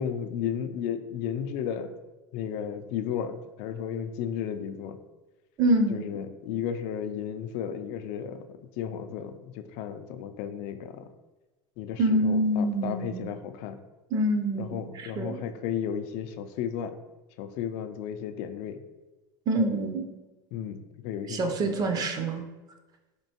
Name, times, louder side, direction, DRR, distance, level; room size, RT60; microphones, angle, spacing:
voice 1, 0.0-1.9 2.3-5.0 5.9-11.1 11.8-13.8 14.6-17.0 17.4-18.8 20.5-21.9, left 8 dB, 60° left, 9 dB, 0.4 m, -34 dB
voice 2, 5.6-6.0 12.0-13.3 14.1-15.3 19.5-20.0 21.3-22.4, right 1 dB, 35° right, 5 dB, 0.5 m, -26 dB
4.3 x 3.0 x 2.8 m, 1.2 s
supercardioid pair, 120°, 11 cm